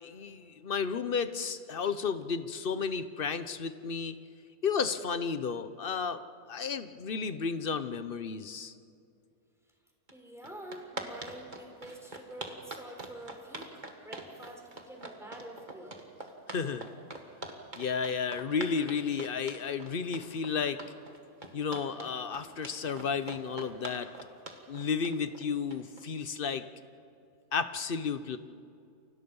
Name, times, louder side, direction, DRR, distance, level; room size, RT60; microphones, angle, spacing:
voice 1, 0.0-4.2 4.6-6.2 6.5-8.7 16.5-16.9 17.8-20.8 21.5-24.1 24.7-26.6 27.5-28.4, left 6 dB, 40° left, 11 dB, 0.9 m, -32 dB
voice 2, 10.1-16.0, right 1 dB, ahead, 1 dB, 4.0 m, -47 dB
sound 1, 10.1-10.2 10.4-26.0, right 2 dB, 30° right, 2.1 m, -43 dB
29.5 x 24.5 x 5.5 m, 2.5 s
omnidirectional pair, 1.7 m